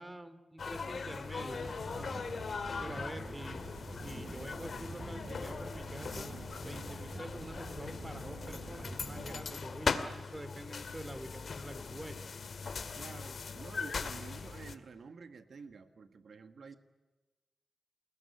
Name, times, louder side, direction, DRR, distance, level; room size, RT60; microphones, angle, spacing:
voice 1, 0.0-2.3 2.8-3.7 4.0-12.3, right 1 dB, 15° right, 12 dB, 2.6 m, -47 dB
sound 1, 0.6-14.8, left 5 dB, 65° left, 2.1 m, -40 dB
sound 2, 1.4-9.4, right 2 dB, 50° right, 7.7 m, -47 dB
voice 2, 12.9-16.7, right 5 dB, 75° right, 9 dB, 1.7 m, -50 dB
29.0 x 20.0 x 9.9 m, 1.1 s
wide cardioid pair, 90°, 0 cm